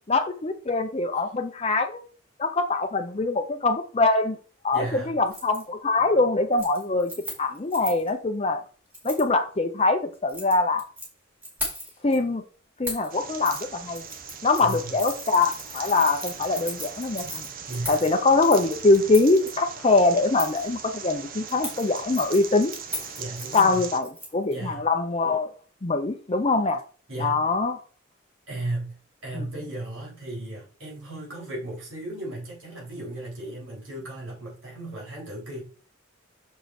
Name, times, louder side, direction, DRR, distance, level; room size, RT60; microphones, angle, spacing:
voice 1, 0.1-2.0 2.4-4.4 4.6-7.1 7.4-8.6 9.0-10.9 12.0-12.4 12.8-14.0 14.4-17.5 17.9-22.7 23.5-25.5 25.8-26.8 27.2-27.8 29.3-29.5, left 3 dB, 30° left, 0.6 m, -23 dB
voice 2, 4.7-5.2 14.6-15.0 17.7-18.0 23.2-23.9 24.5-24.8 27.1-27.4 28.5-35.6, right 2 dB, 70° right, 4.1 m, -35 dB
Keys jangling, 5.3-5.6 6.0-6.2 6.5-8.1 8.9-9.3 10.1-11.1 11.4-12.2 12.8-13.1 13.4-13.6 13.9-19.5 20.4-20.7 21.5-24.5 24.8-24.9, left 1 dB, 10° right, 2.7 m, -37 dB
sound 1, 13.1-24.0, right 6 dB, 45° right, 0.9 m, -40 dB
6.6 x 5.0 x 4.3 m
head